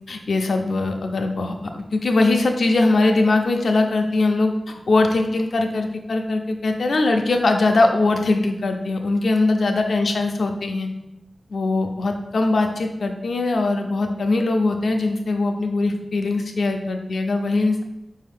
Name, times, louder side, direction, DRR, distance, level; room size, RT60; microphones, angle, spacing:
voice 1, 0.1-10.9 11.5-17.8, left 2 dB, 75° left, 4 dB, 0.4 m, -21 dB
4.8 x 2.7 x 3.4 m, 0.90 s
wide cardioid pair, 90°, 0 cm